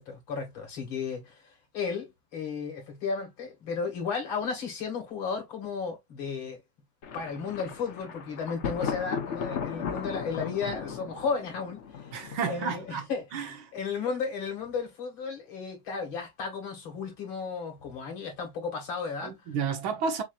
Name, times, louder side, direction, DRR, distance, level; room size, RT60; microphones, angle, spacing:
voice 1, 0.0-1.5 1.7-6.6 7.1-12.2 12.5-13.5 13.7-19.3, left 5 dB, 75° left, 2.7 m, -34 dB
Thunder, 7.0-12.8, left 7 dB, 55° left, 0.8 m, -36 dB
voice 2, 12.1-13.1 13.3-13.5 19.2-20.2, right 6 dB, 90° right, 1.8 m, -31 dB
6.1 x 2.7 x 2.4 m
omnidirectional pair, 2.2 m